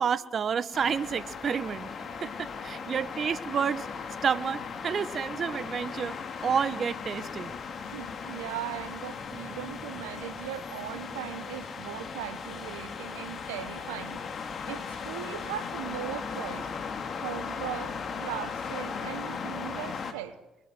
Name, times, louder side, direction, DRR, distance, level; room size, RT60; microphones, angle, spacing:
voice 1, 0.0-1.9 2.2-3.9 4.2-6.2 6.4-7.5, right 7 dB, 50° right, 15 dB, 1.2 m, -29 dB
sound 1, 0.7-20.1, left 5 dB, 55° left, 3.1 m, -37 dB
voice 2, 7.8-14.2 14.7-16.7 17.2-17.9 18.2-20.4, right 13 dB, 85° right, 13 dB, 1.1 m, -39 dB
25.5 x 22.5 x 7.8 m, 0.99 s
hypercardioid pair, 50°, 0 cm